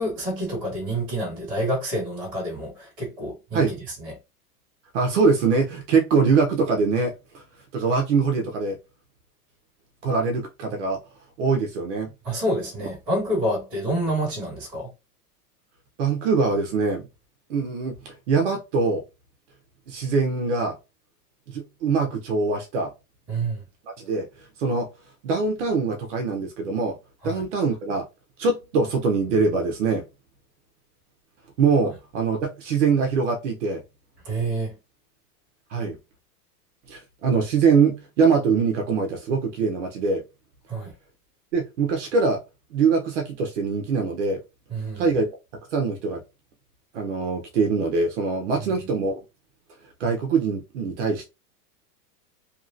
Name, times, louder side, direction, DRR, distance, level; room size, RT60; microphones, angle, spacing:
voice 1, 0.0-4.1 12.2-14.9 23.3-23.6 27.2-27.4 34.2-34.8 40.7-40.9 44.7-45.1, right 1 dB, 5° right, 0.4 m, -28 dB
voice 2, 4.9-7.4 7.7-8.8 10.0-11.0 11.4-12.1 16.0-17.0 17.5-19.0 19.9-20.7 21.5-22.9 24.0-24.3 24.6-24.9 25.2-27.0 27.2-28.0 28.4-30.0 31.6-33.8 35.7-36.0 36.9-40.2 41.5-42.4 42.7-44.4 45.0-45.3 45.7-46.2 46.9-49.2 50.0-51.3, right 4 dB, 50° right, 0.8 m, -23 dB
2.9 x 2.8 x 2.5 m
supercardioid pair, 180°, 46 cm